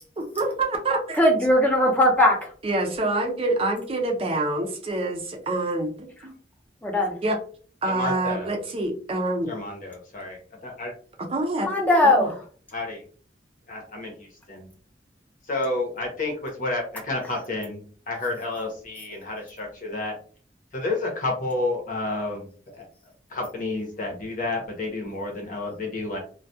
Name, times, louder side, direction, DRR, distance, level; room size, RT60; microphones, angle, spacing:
voice 1, 0.2-1.2 2.6-6.3 7.2-7.4 7.8-9.5 11.2-11.7 12.0-12.3, right 2 dB, 35° right, 2 dB, 0.5 m, -26 dB
voice 2, 1.2-2.4 6.8-7.2 11.6-12.4, left 1 dB, 10° left, 0 dB, 0.6 m, -19 dB
voice 3, 7.8-8.5 9.5-10.9 12.7-13.0 13.7-14.7 15.5-17.8 18.1-20.1 20.7-22.5 22.7-22.9 23.3-26.2, left 2 dB, 50° left, 1 dB, 0.8 m, -30 dB
2.2 x 2.2 x 2.6 m, 0.43 s
head